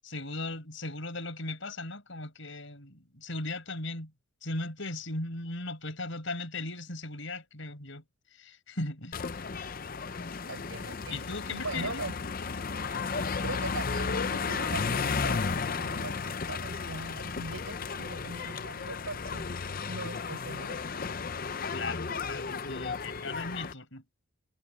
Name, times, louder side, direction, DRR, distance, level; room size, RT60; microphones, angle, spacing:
voice 1, 0.0-4.1 4.4-8.0 8.3-9.2 11.1-12.0 21.7-24.0, left 2 dB, 65° left, 6.1 m, -37 dB
sound 1, 9.1-23.7, left 5 dB, 40° left, 0.6 m, -34 dB
voice 2, 10.5-12.1 13.4-19.5 19.9-20.8, right 2 dB, 80° right, 7.5 m, -41 dB
head